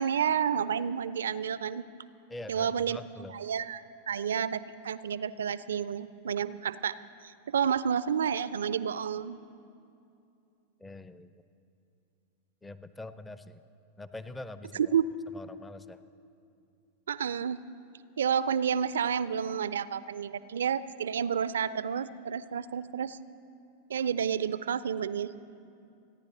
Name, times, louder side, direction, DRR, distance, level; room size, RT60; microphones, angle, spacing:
voice 1, 0.0-1.8 2.5-3.0 3.3-7.0 7.2-9.4 14.7-15.0 17.1-17.6 18.2-23.2 23.9-25.4, right 8 dB, 65° right, 16 dB, 0.3 m, -30 dB
voice 2, 2.3-3.4 10.8-11.3 12.6-13.6 14.0-14.9 15.3-16.0, left 2 dB, 10° left, 14 dB, 0.5 m, -44 dB
28.5 x 10.0 x 4.1 m, 2.6 s
figure-of-eight pair, 90°, 0 cm